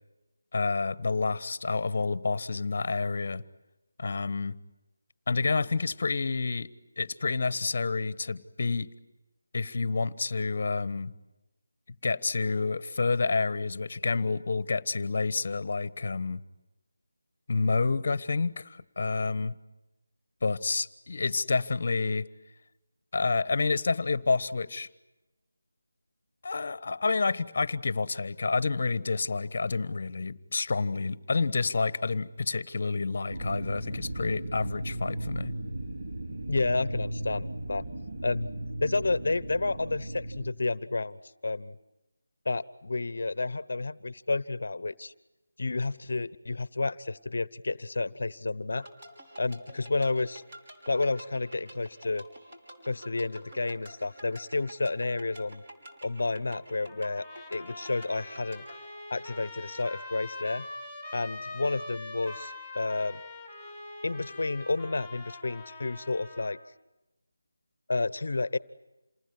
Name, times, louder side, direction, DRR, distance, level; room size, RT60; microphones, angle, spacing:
voice 1, 0.5-3.4 4.0-4.5 5.3-6.7 7.0-8.9 9.5-11.1 12.0-16.4 17.5-19.6 20.4-22.3 23.1-24.9 26.4-35.5, left 4 dB, 45° left, 18 dB, 1.2 m, -29 dB
sound 1, 33.3-40.5, right 1 dB, 45° right, 3.3 m, -36 dB
voice 2, 36.5-37.8 38.2-38.5 38.8-41.2 41.4-41.8 42.4-45.1 45.6-48.9 49.4-50.4 50.9-52.2 52.8-55.6 56.0-57.2 57.5-58.6 59.1-60.7 61.1-63.2 64.0-66.6 67.9-68.6, left 3 dB, 60° left, 19 dB, 1.0 m, -30 dB
sound 2, 48.8-58.8, equal, 25° right, 5.6 m, -49 dB
Trumpet, 56.9-66.6, left 2 dB, 5° right, 6.3 m, -43 dB
28.5 x 20.0 x 9.6 m, 0.99 s
figure-of-eight pair, 170°, 0 cm